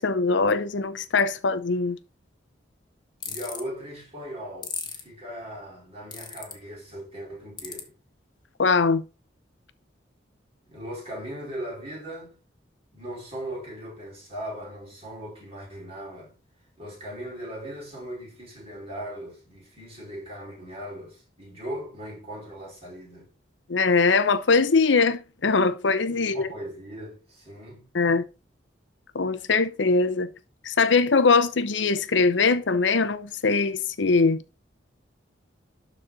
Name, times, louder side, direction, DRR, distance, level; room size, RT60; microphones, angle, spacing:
voice 1, 0.0-2.0 8.6-9.0 23.7-26.5 27.9-28.2 29.1-30.3 30.6-34.4, left 4 dB, 75° left, 0.7 m, -22 dB
sound 1, 3.2-3.6 4.6-5.0 6.1-6.5 7.6-7.8, left 7 dB, 25° left, 1.5 m, -34 dB
voice 2, 3.2-8.0 10.7-12.4 12.9-16.3 16.8-23.3 26.1-27.9, equal, 30° right, 4.9 m, -38 dB
12.0 x 4.2 x 3.9 m
head